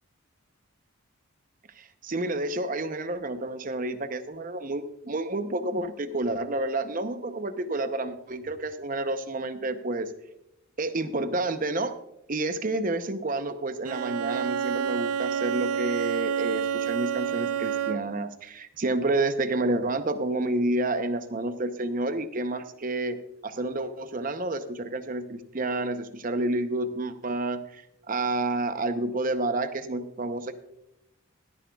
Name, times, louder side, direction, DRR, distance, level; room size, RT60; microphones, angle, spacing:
voice 1, 1.8-10.1 10.8-11.9 12.3-23.2 23.4-27.8 28.1-30.5, right 2 dB, 40° right, 9 dB, 0.7 m, -29 dB
Bowed string instrument, 13.8-18.3, right 8 dB, 85° right, 0.5 m, -29 dB
20.5 x 10.0 x 2.3 m, 0.84 s
head